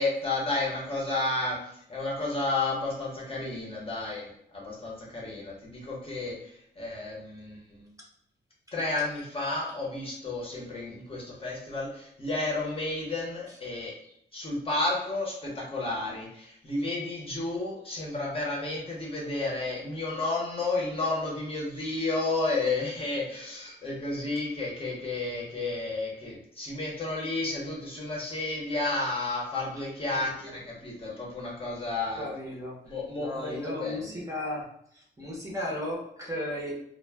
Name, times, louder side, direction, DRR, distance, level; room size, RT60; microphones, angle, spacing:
voice 1, 0.0-1.6 1.9-6.3 6.8-7.9 8.7-13.9 14.3-32.3 32.9-34.2, left 2 dB, 30° left, -3 dB, 0.8 m, -32 dB
voice 2, 30.1-30.5 31.1-31.2 32.1-32.7 33.1-34.6 34.9-36.7, left 1 dB, 15° right, -4 dB, 0.7 m, -35 dB
2.2 x 2.1 x 3.2 m, 0.72 s
wide cardioid pair, 130°, 19 cm